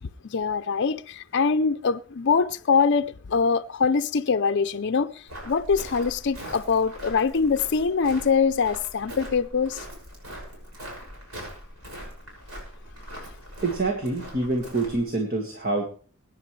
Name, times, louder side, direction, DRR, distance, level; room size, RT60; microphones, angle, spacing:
voice 1, 0.2-9.8, left 5 dB, 55° left, 0.5 m, -23 dB
Walk footsteps, 5.3-15.0, equal, 90° right, 6.3 m, -41 dB
voice 2, 13.6-15.8, right 2 dB, 45° right, 1.8 m, -26 dB
23.0 x 10.0 x 3.2 m
head